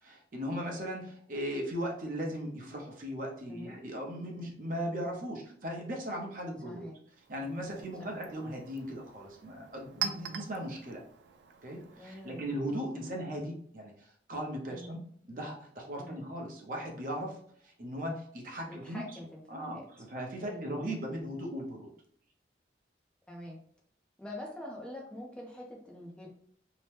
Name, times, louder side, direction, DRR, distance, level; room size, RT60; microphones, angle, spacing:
voice 1, 0.0-6.8 7.3-11.0 11.6-17.4 17.6-21.9, equal, 50° right, 0 dB, 0.7 m, -38 dB
voice 2, 6.7-7.0 8.0-8.2 12.0-12.5 12.9-13.2 14.7-14.9 16.0-16.2 18.7-19.8 20.4-20.8 23.3-23.6 24.2-26.3, left 1 dB, 5° left, -2 dB, 0.5 m, -45 dB
Chink clink, 7.1-12.6, right 9 dB, 80° right, 0.3 m, -43 dB
2.8 x 2.1 x 3.2 m, 0.62 s
head